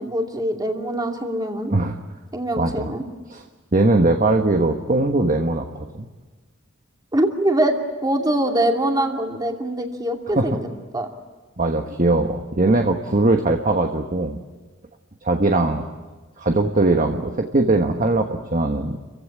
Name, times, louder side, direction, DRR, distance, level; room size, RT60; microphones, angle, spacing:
voice 1, 0.0-1.7 2.3-3.0 7.1-7.8 8.0-10.7 10.9-11.1, right 1 dB, 20° right, 2 dB, 2.6 m, -23 dB
voice 2, 2.6-2.9 3.3-3.4 3.7-5.7 5.9-6.1 10.4-10.5 11.6-14.4 15.2-15.8 16.4-19.0, right 2 dB, 40° right, 4 dB, 1.3 m, -20 dB
29.0 x 16.0 x 10.0 m, 1.3 s
head